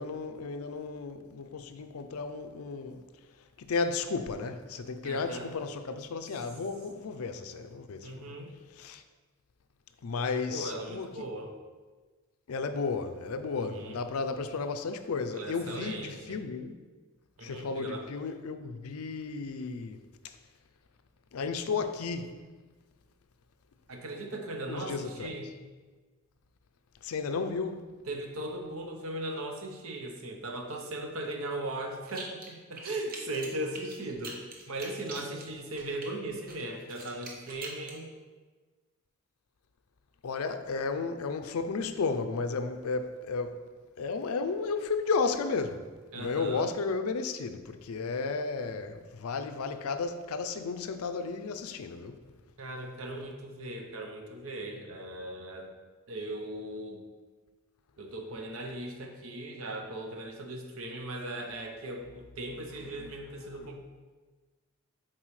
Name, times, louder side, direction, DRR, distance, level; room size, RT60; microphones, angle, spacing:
voice 1, 0.0-3.0 3.6-8.2 8.8-9.0 10.0-11.1 12.5-16.7 17.4-20.0 21.3-22.3 24.7-25.3 27.0-27.8 40.2-43.6 44.0-52.2 63.0-63.1, left 4 dB, 75° left, 0.4 m, -33 dB
voice 2, 5.0-5.5 8.0-8.5 10.5-11.5 13.6-14.0 15.3-16.4 17.4-18.1 23.9-25.5 28.1-38.1 46.1-46.7 52.6-55.7 56.1-57.0 58.0-63.8, right 1 dB, 70° right, 0.8 m, -38 dB
sound 1, 32.1-32.5 32.8-36.1 36.5-38.0, right 3 dB, 40° right, 0.9 m, -44 dB
7.4 x 4.4 x 3.2 m
head